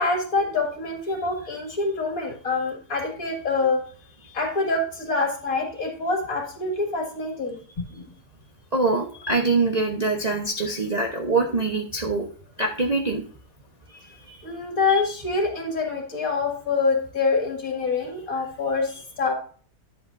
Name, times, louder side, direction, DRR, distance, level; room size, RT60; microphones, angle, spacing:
voice 1, 0.0-3.8 4.3-7.6 7.9-8.0 14.4-18.9 19.2-19.3, left 3 dB, 55° left, 2 dB, 2.4 m, -25 dB
voice 2, 8.7-12.2 12.6-13.2 14.3-14.4, right 3 dB, 30° right, 0 dB, 0.8 m, -24 dB
10.5 x 8.0 x 2.6 m, 0.42 s
omnidirectional pair, 1.7 m